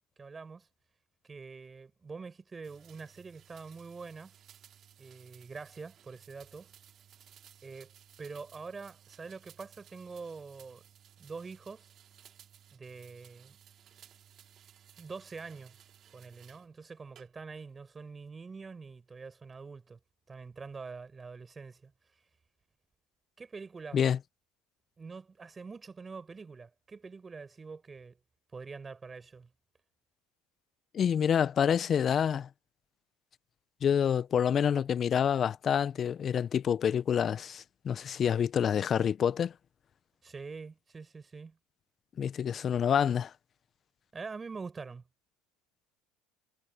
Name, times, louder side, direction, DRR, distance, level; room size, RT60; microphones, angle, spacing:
voice 1, 0.2-0.7 1.2-4.3 5.0-6.7 7.6-7.9 8.2-10.8 11.2-11.9 12.7-13.6 15.0-15.8 16.1-20.0 20.3-21.9 23.4-24.0 25.0-28.2 28.5-29.5 40.2-41.6 44.1-45.0, right 4 dB, 20° right, 7.1 m, -45 dB
sound 1, 2.6-16.7 17.2-17.7, right 10 dB, 45° right, 5.8 m, -59 dB
voice 2, 30.9-32.5 33.8-39.5 42.2-43.3, left 8 dB, 40° left, 0.6 m, -27 dB
supercardioid pair, 100°, 0 cm